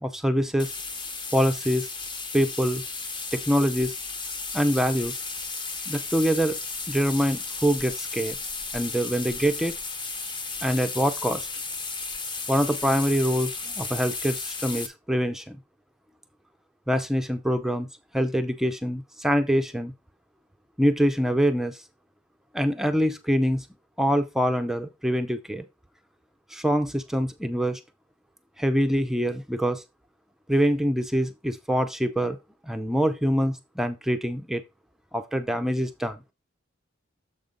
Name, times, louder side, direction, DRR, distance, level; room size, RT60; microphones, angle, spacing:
voice 1, 0.0-0.7 1.3-1.9 2.3-2.8 3.3-4.0 4.5-5.2 5.9-6.6 6.9-8.4 8.7-9.7 10.6-11.5 12.5-15.6 16.9-17.9 18.1-19.9 20.8-21.8 22.5-23.7 24.0-25.7 26.5-27.8 28.6-29.8 30.5-32.4 32.6-34.6 35.1-36.2, equal, ahead, 0.4 m, -25 dB
sound 1, 0.6-14.9, left 4 dB, 25° left, 0.8 m, -34 dB
7.2 x 5.1 x 3.8 m
head